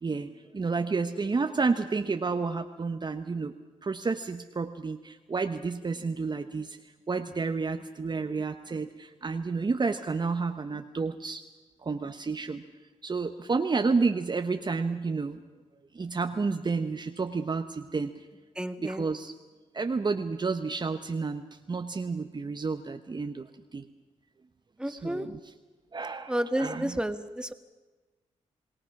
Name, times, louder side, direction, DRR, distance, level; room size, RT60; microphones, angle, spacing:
voice 1, 0.0-3.5 3.8-6.8 7.1-11.4 11.8-12.6 13.0-15.4 15.9-18.1 18.8-19.3 19.7-23.5 23.7-23.8 24.9-25.4 25.9-27.0, right 4 dB, 35° right, 7 dB, 1.1 m, -30 dB
voice 2, 18.6-19.1 24.8-25.3 26.3-27.5, right 1 dB, 5° right, 9 dB, 1.7 m, -31 dB
27.5 x 19.0 x 6.0 m, 1.2 s
cardioid pair, 65°, 13 cm